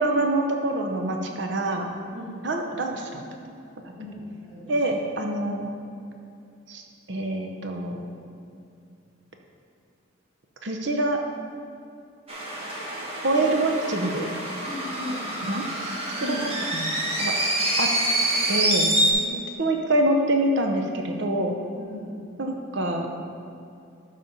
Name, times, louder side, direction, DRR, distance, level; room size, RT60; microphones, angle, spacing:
voice 1, 0.0-1.9 2.4-3.2 4.7-5.7 6.7-6.8 7.1-8.1 10.6-11.2 13.2-14.3 15.4-15.7 16.3-16.4 16.7-16.9 17.2-17.3 17.8-17.9 18.5-18.9 19.6-21.6 22.4-23.1, right 1 dB, 65° right, 3 dB, 0.7 m, -25 dB
voice 2, 2.1-2.5 4.0-4.7 13.4-13.5 14.6-15.2 16.2-16.5 19.2-19.5 20.1-20.2 21.8-22.1, left 2 dB, 10° right, -15 dB, 2.2 m, -37 dB
sound 1, 12.3-19.1, right 1 dB, 30° right, 1.2 m, -26 dB
12.0 x 4.1 x 5.4 m, 2.5 s
head